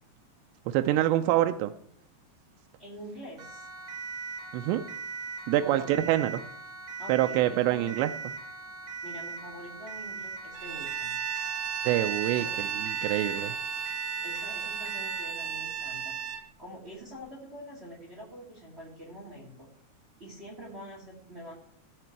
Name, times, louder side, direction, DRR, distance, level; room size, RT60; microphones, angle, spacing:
voice 1, 0.7-1.7 4.5-4.8 5.5-6.4 7.1-8.3 11.9-13.6, right 13 dB, 85° right, 7 dB, 2.8 m, -26 dB
voice 2, 2.8-3.7 5.6-5.9 7.0-7.8 9.0-11.2 12.3-12.5 14.2-19.7 20.2-21.5, equal, 25° right, -2 dB, 1.4 m, -45 dB
Siren, 3.4-15.4, right 4 dB, 45° right, 2.0 m, -40 dB
Bowed string instrument, 10.5-16.5, right 8 dB, 70° right, 2.3 m, -34 dB
17.0 x 5.8 x 4.6 m, 0.67 s
omnidirectional pair, 5.0 m